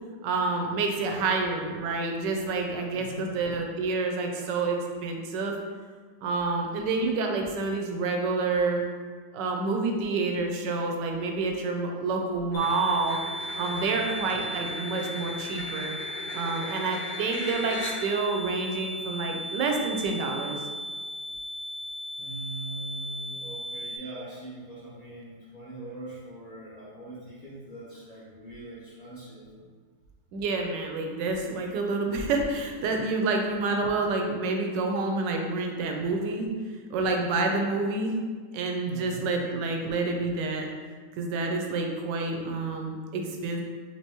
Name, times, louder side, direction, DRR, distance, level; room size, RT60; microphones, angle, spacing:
voice 1, 0.2-5.6 6.2-8.8 9.3-13.2 13.6-16.0 16.3-20.6 30.3-36.5 36.9-38.2 38.5-40.7 41.2-43.6, right 3 dB, 80° right, 2 dB, 1.3 m, -28 dB
voice 2, 2.9-3.3 4.3-4.4 13.8-13.9 22.2-29.4 38.9-39.3, right 2 dB, 35° left, -12 dB, 0.7 m, -42 dB
sound 1, 12.5-18.3, left 1 dB, 90° left, 1.4 m, -39 dB
sound 2, 12.5-24.0, equal, 75° left, 1.2 m, -37 dB
4.5 x 3.3 x 3.0 m, 1.5 s
omnidirectional pair, 1.9 m